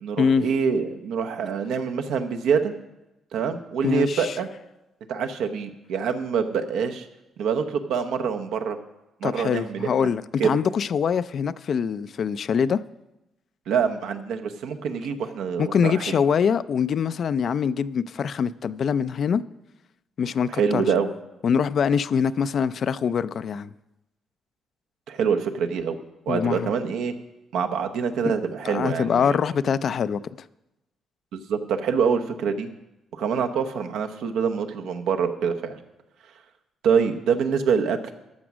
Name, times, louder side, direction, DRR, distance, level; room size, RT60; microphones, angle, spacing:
voice 1, 0.0-2.7 3.3-4.5 5.1-7.1 7.4-8.8 9.2-10.1 10.4-10.5 13.7-16.2 20.5-21.1 25.1-26.0 26.3-27.1 27.5-29.4 31.3-32.7 33.1-35.8 36.8-38.1, right 6 dB, 85° right, 0.9 m, -25 dB
voice 2, 3.8-4.3 9.2-12.8 15.6-19.4 20.2-20.9 21.4-23.7 26.3-26.7 28.3-28.4 28.6-30.2, left 7 dB, 55° left, 0.4 m, -24 dB
13.5 x 6.0 x 6.2 m
cardioid pair, 90°, 0 cm